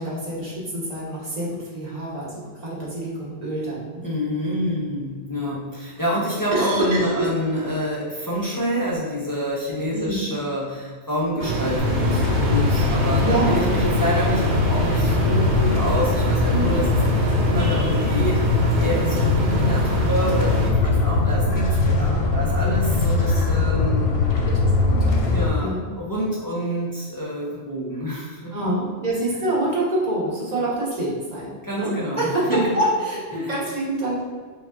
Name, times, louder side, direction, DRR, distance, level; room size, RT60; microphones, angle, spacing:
voice 1, 0.0-4.0 6.5-7.3 9.9-10.3 13.2-13.6 16.5-16.7 24.3-25.8 28.5-34.2, right 1 dB, 40° right, -6 dB, 1.1 m, -26 dB
voice 2, 4.0-24.2 25.2-28.7 31.6-32.8 33.3-33.5, equal, 30° left, -7 dB, 0.4 m, -27 dB
sound 1, 11.4-20.7, right 2 dB, 90° right, 0.9 m, -25 dB
sound 2, 11.8-25.5, left 3 dB, 65° left, 0.8 m, -21 dB
5.1 x 2.3 x 2.4 m, 1.5 s
omnidirectional pair, 1.1 m